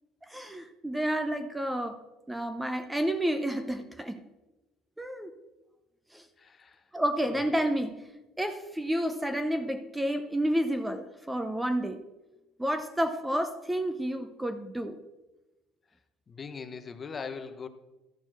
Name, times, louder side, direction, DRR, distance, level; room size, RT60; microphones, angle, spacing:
voice 1, 0.3-2.0 2.3-4.2 5.0-5.3 6.1-6.2 6.9-8.0 8.4-12.0 12.6-15.0, equal, 5° right, 8 dB, 0.6 m, -30 dB
voice 2, 6.4-6.8 7.3-7.4 16.3-17.7, left 5 dB, 30° left, 10 dB, 0.8 m, -40 dB
13.0 x 4.4 x 5.9 m, 1.1 s
cardioid pair, 110°, 0 cm